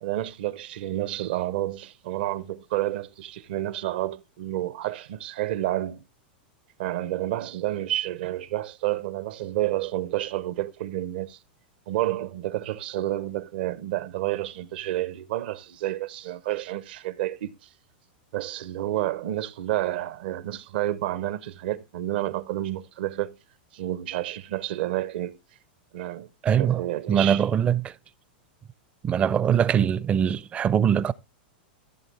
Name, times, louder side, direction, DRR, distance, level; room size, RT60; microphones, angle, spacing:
voice 1, 0.0-6.0 6.8-11.4 11.9-17.7 18.3-23.3 23.7-25.4 25.9-27.5, right 14 dB, 70° right, 0.7 m, -30 dB
voice 2, 26.4-26.8 27.1-27.9 29.0-31.1, right 8 dB, 20° right, 0.4 m, -22 dB
15.0 x 7.2 x 3.3 m
supercardioid pair, 135°, 5 cm